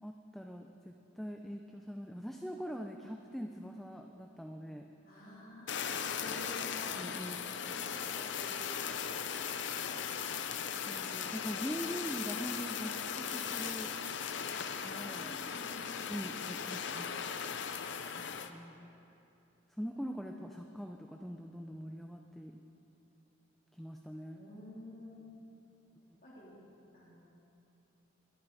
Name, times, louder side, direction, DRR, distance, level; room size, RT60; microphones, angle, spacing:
voice 1, 0.0-4.9 7.0-7.4 10.9-13.9 14.8-15.4 16.1-17.3 18.2-18.9 19.8-22.6 23.8-24.4, equal, ahead, 2 dB, 0.4 m, -43 dB
voice 2, 5.0-7.0 7.6-9.2 15.0-16.1 24.3-25.2 26.2-26.6 26.9-27.3, left 1 dB, 45° left, -6 dB, 3.1 m, -51 dB
Fire, 5.7-18.5, left 7 dB, 65° left, 0.6 m, -38 dB
22.0 x 9.1 x 4.1 m, 2.9 s
head